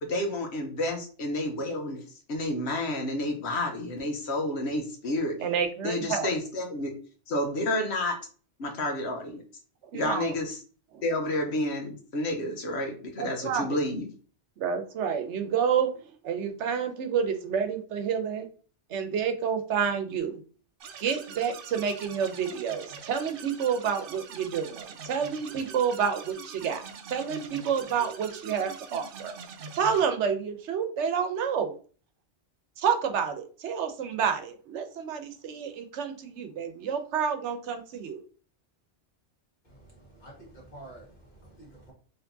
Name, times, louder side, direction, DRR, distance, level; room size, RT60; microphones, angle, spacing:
voice 1, 0.0-5.3 5.8-6.9 7.3-8.1 8.6-9.4 9.9-10.6 11.0-14.1, left 1 dB, 70° left, 3 dB, 1.1 m, -30 dB
voice 2, 5.4-6.3 9.9-10.3 10.9-11.0 13.2-13.7 14.6-15.9 16.2-18.5 18.9-20.4 21.0-26.8 27.1-29.3 29.7-31.7 32.8-38.2, right 7 dB, 90° right, 7 dB, 1.0 m, -29 dB
sound 1, 20.8-30.1, right 6 dB, 60° right, 0.7 m, -44 dB
voice 3, 39.6-41.9, right 1 dB, 40° left, -3 dB, 1.8 m, -49 dB
4.4 x 3.2 x 2.7 m, 0.39 s
omnidirectional pair, 1.2 m